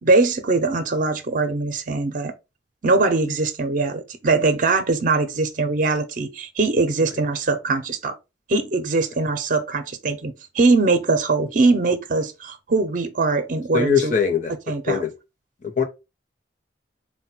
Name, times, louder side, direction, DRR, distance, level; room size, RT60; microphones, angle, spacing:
voice 1, 0.0-2.3 2.8-8.2 8.5-14.1 14.7-15.0, right 3 dB, 50° right, 0.5 m, -21 dB
voice 2, 13.7-14.5 14.9-15.1 15.6-15.8, left 6 dB, 45° left, 0.7 m, -21 dB
4.1 x 2.2 x 4.2 m
head